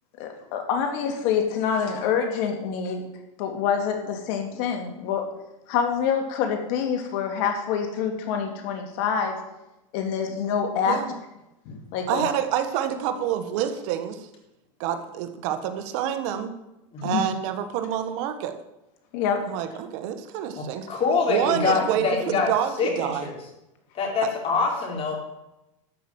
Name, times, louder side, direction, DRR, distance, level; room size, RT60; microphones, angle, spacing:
voice 1, 0.2-3.1 3.4-5.3 5.7-9.4 9.9-11.0 11.7-12.1 17.0-17.3 19.1-19.5, left 7 dB, 60° left, 4 dB, 2.6 m, -26 dB
voice 2, 12.1-14.2 14.8-16.5 17.0-18.5 19.5-21.0 21.3-23.3, right 10 dB, 65° right, 8 dB, 1.6 m, -27 dB
voice 3, 20.6-22.5 22.8-23.4 23.9-25.1, left 4 dB, 35° left, 0 dB, 4.5 m, -25 dB
12.5 x 6.1 x 9.0 m, 0.93 s
supercardioid pair, 125°, 17 cm